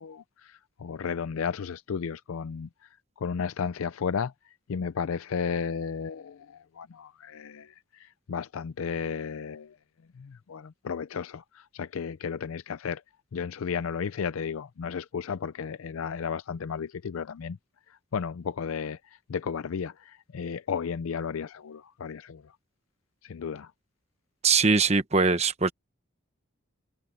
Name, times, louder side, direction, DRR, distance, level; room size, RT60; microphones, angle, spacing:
voice 1, 0.0-2.7 3.2-4.3 4.7-7.7 8.0-9.7 10.2-13.0 13.3-17.6 18.1-19.0 19.3-22.4 23.2-23.7, left 6 dB, 75° left, 0.4 m, -33 dB
voice 2, 24.4-25.7, right 4 dB, 30° right, 1.1 m, -22 dB
head